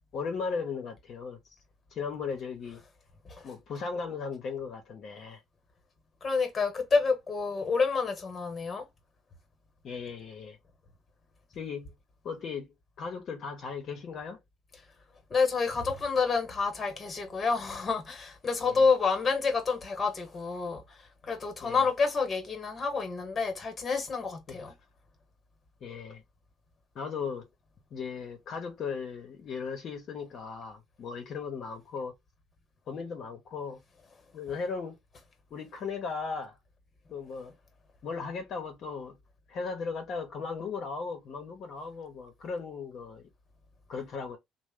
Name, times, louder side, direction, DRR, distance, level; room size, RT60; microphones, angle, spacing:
voice 1, 0.1-1.4 1.9-2.8 3.4-5.4 9.8-10.6 11.5-11.9 12.2-12.7 13.0-14.4 18.6-18.8 21.6-21.9 24.5-24.6 25.8-26.2 26.9-27.5 27.9-32.1 32.9-33.8 34.3-34.9 35.5-36.6 37.1-37.5 38.0-39.2 39.5-43.2 43.9-44.4, left 5 dB, 55° left, 0.8 m, -37 dB
voice 2, 6.2-8.8 15.3-20.8 21.2-24.7, left 4 dB, 30° left, 1.2 m, -28 dB
3.1 x 2.1 x 3.6 m
cardioid pair, 100°, 0 cm